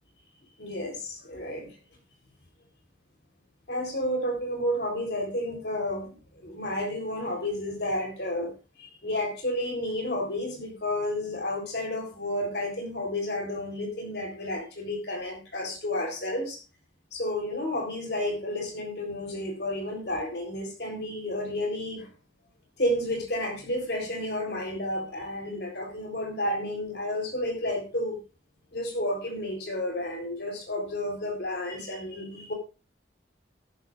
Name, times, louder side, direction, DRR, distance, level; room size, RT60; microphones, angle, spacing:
voice 1, 0.6-1.7 3.7-6.1 6.4-8.5 8.8-16.6 17.1-22.1 22.8-28.2 28.7-32.5, left 1 dB, 60° left, 3 dB, 3.9 m, -31 dB
13.5 x 13.0 x 2.5 m, 0.30 s
head